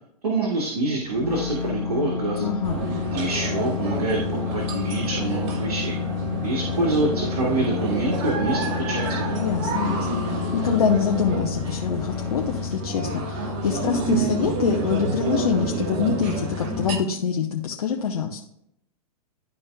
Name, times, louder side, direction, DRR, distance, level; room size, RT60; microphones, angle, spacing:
voice 1, 0.2-2.5 3.1-6.0 6.4-9.3, right 2 dB, 80° right, -2 dB, 1.7 m, -26 dB
sound 1, 1.0-12.8, left 6 dB, 5° left, 1.4 m, -30 dB
voice 2, 2.4-2.8 9.4-18.4, left 7 dB, 80° left, 0 dB, 1.0 m, -25 dB
sound 2, 2.6-17.0, right 2 dB, 50° right, 1.4 m, -29 dB
12.0 x 4.3 x 2.3 m, 0.76 s
hypercardioid pair, 115°, 19 cm